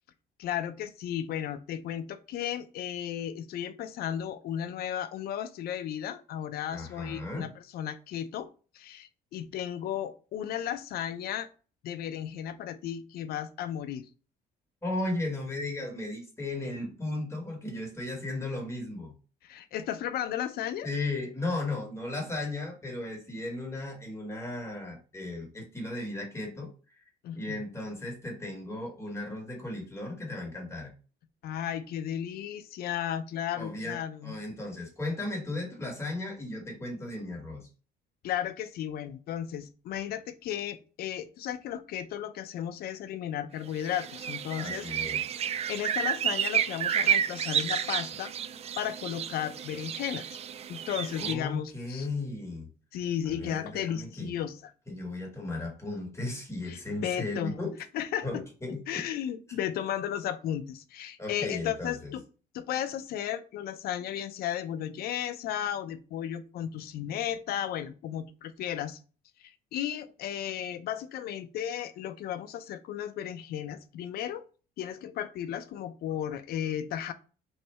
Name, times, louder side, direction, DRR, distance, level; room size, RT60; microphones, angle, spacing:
voice 1, 0.4-8.5 8.7-11.5 11.8-14.1 19.4-20.9 27.2-27.6 31.4-34.4 38.2-44.9 45.7-48.3 48.8-50.3 50.7-52.1 52.9-54.7 56.7-57.6 57.9-58.4 58.9-62.2 62.5-69.0 69.4-74.4 74.8-77.1, left 10 dB, 65° left, 0.5 m, -34 dB
voice 2, 6.7-7.5 14.8-19.1 20.8-26.7 27.3-30.9 33.5-37.7 44.6-45.3 51.1-52.7 53.4-54.3 54.9-57.8 58.2-59.0 61.2-62.1, left 2 dB, 15° left, 1.6 m, -35 dB
sound 1, 43.8-51.3, right 9 dB, 40° right, 0.4 m, -31 dB
3.2 x 2.7 x 4.2 m
cardioid pair, 110°, 17 cm